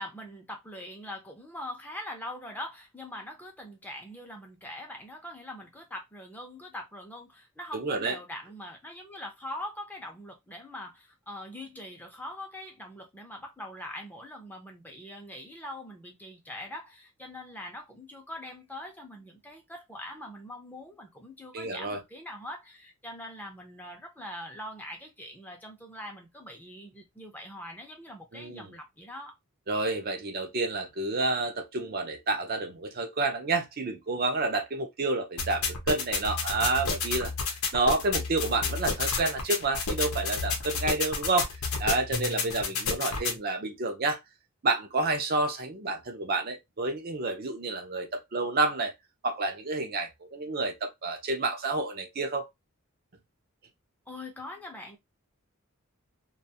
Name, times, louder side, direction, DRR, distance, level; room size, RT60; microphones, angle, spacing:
voice 1, 0.0-29.3 54.1-55.0, left 1 dB, 10° left, 0.6 m, -42 dB
voice 2, 7.7-8.2 21.5-22.0 28.3-28.7 29.7-37.3 37.7-41.5 41.8-44.2 44.6-48.9 49.2-52.4, right 3 dB, 45° right, 0.5 m, -29 dB
sound 1, 35.4-43.4, left 4 dB, 85° left, 0.7 m, -31 dB
2.5 x 2.3 x 2.7 m
head